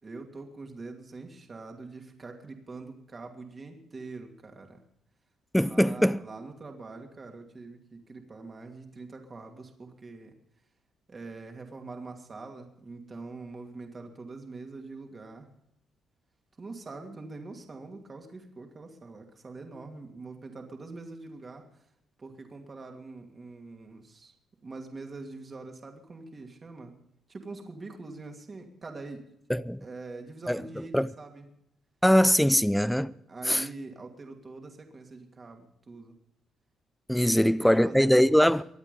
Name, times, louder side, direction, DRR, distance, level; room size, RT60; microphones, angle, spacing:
voice 1, 0.0-4.8 5.6-10.3 11.1-15.5 16.6-21.6 22.2-24.3 24.6-26.9 27.3-29.2 29.8-31.5 33.3-36.2 37.1-38.5, right 3 dB, 35° right, 2.6 m, -44 dB
voice 2, 5.5-6.2 29.5-29.8 30.5-30.6 30.9-31.1 32.0-33.1 33.5-33.6 37.1-38.6, equal, ahead, 0.5 m, -22 dB
23.5 x 9.1 x 5.4 m
cardioid pair, 90°, 0 cm